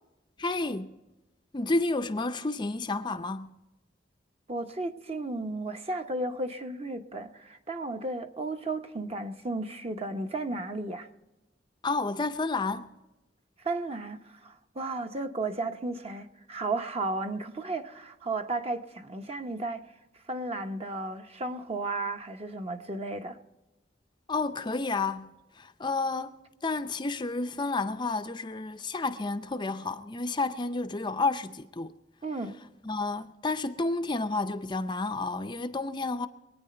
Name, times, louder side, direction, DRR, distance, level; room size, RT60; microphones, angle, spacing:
voice 1, 0.4-1.0 1.5-3.5 11.8-12.9 24.3-26.4 26.6-31.9 32.8-36.3, left 3 dB, 25° left, 0.5 m, -30 dB
voice 2, 4.5-11.1 13.6-19.9 20.3-23.4 32.2-32.6, right 2 dB, 35° right, 1.0 m, -34 dB
24.0 x 9.3 x 4.4 m
head